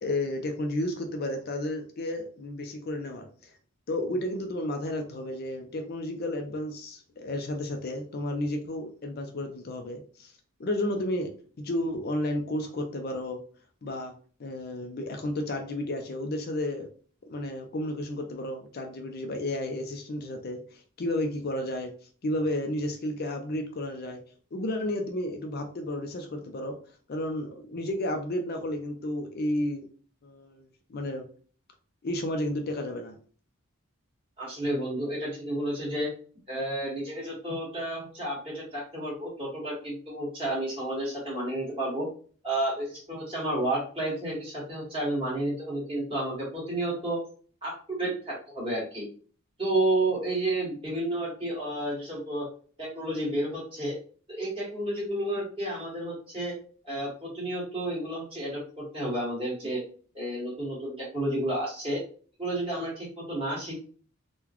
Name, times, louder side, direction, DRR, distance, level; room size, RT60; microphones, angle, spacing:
voice 1, 0.0-3.5 3.9-10.3 10.6-13.4 13.8-14.1 14.4-16.9 17.3-21.9 22.2-24.2 24.5-26.8 27.1-29.8 30.2-31.3 32.0-33.1, left 1 dB, 45° left, 4 dB, 0.5 m, -32 dB
voice 2, 34.4-36.1 36.5-42.1 42.4-47.2 47.6-49.0 49.6-52.5 52.8-54.0 54.3-56.5 56.8-59.8 60.1-62.0 62.4-63.8, right 1 dB, 25° right, -5 dB, 1.7 m, -31 dB
3.8 x 2.2 x 2.9 m, 0.42 s
head